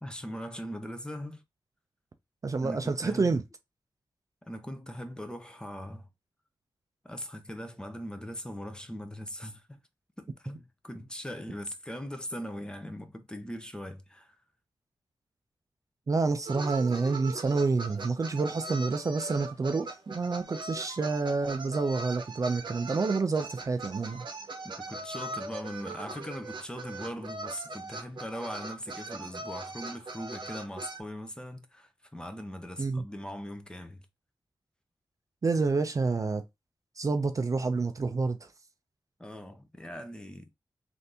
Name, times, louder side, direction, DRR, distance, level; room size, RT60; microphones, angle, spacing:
voice 1, 0.0-1.4 2.6-3.3 4.4-6.1 7.0-9.8 10.2-14.4 24.6-34.1 39.2-40.5, equal, 10° left, 0.6 m, -40 dB
voice 2, 2.4-3.4 16.1-24.3 32.8-33.0 35.4-36.4 37.0-38.4, right 4 dB, 40° right, 0.4 m, -28 dB
sound 1, 16.4-31.0, right 2 dB, 60° right, 0.8 m, -40 dB
3.3 x 2.6 x 2.7 m
wide cardioid pair, 85°, 9 cm